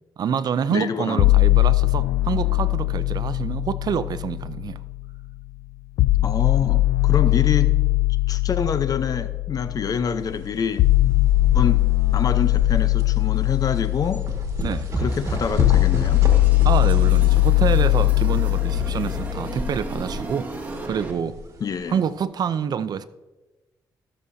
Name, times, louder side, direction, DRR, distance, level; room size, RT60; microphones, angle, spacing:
voice 1, 0.2-4.8 14.6-14.9 16.6-20.5 20.9-21.4 21.9-23.0, right 7 dB, 60° right, 14 dB, 0.5 m, -27 dB
voice 2, 0.7-1.3 6.2-7.8 8.3-10.9 11.5-11.9 12.1-14.2 15.0-16.3 21.6-22.0, left 6 dB, 55° left, 11 dB, 0.7 m, -26 dB
sound 1, 1.2-5.2 6.0-20.0, left 19 dB, 85° left, 0.4 m, -20 dB
sound 2, 10.2-22.2, right 2 dB, 45° right, 2.0 m, -33 dB
sound 3, 15.0-21.1, right 2 dB, 25° right, 1.8 m, -36 dB
15.5 x 7.0 x 2.7 m, 1.1 s
cardioid pair, 70°, 8 cm